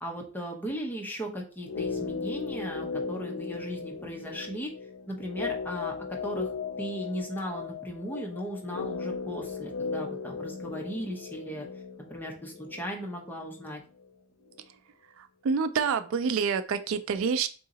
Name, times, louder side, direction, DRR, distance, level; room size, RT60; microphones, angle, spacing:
voice 1, 0.0-4.7 5.1-6.5 6.8-11.7 12.1-13.8, equal, 10° left, 0 dB, 0.8 m, -37 dB
sound 1, 1.6-13.7 14.0-14.1, left 5 dB, 75° left, 0.4 m, -37 dB
voice 2, 15.1-17.5, right 6 dB, 70° right, 12 dB, 0.3 m, -28 dB
3.7 x 2.8 x 3.9 m, 0.38 s
head